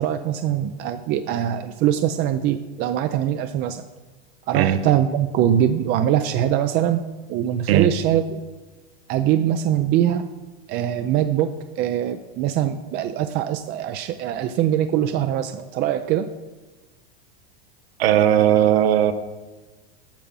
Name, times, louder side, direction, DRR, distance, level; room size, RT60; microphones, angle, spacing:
voice 1, 0.0-3.8 4.5-7.0 7.3-8.4 9.1-10.2 10.7-16.3, right 10 dB, 35° right, 9 dB, 0.4 m, -22 dB
voice 2, 18.0-19.1, right 11 dB, 80° right, 11 dB, 0.7 m, -17 dB
8.7 x 5.8 x 5.5 m, 1.2 s
hypercardioid pair, 115°, 30 cm